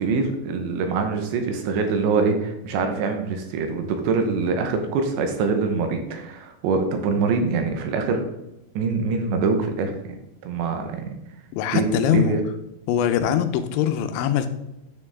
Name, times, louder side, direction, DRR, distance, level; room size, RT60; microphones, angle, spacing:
voice 1, 0.0-8.2 8.8-10.2 10.4-11.1 11.7-12.4, right 4 dB, 80° right, 5 dB, 3.2 m, -24 dB
voice 2, 11.5-12.4 12.9-14.5, left 9 dB, 85° left, 9 dB, 3.1 m, -22 dB
9.9 x 6.8 x 3.6 m, 0.92 s
omnidirectional pair, 5.3 m